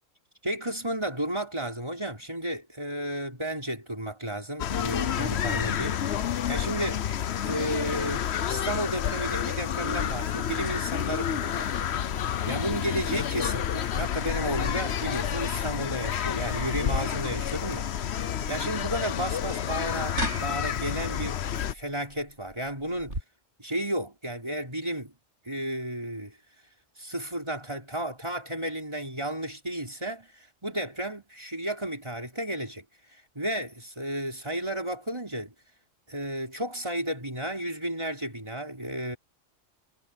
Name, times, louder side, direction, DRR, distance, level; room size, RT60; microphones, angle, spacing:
voice 1, 0.4-6.1 6.5-7.1 7.4-11.8 12.5-17.9 18.5-21.4 21.7-23.2 23.6-25.1 25.5-26.4 27.0-30.3 30.6-32.8 33.4-35.5 36.1-39.2, right 1 dB, 20° right, 5.3 m, -33 dB
sound 1, 4.6-21.7, left 9 dB, 60° left, 1.0 m, -29 dB
sound 2, 16.9-23.2, right 1 dB, 60° right, 8.5 m, -38 dB
omnidirectional pair, 1.3 m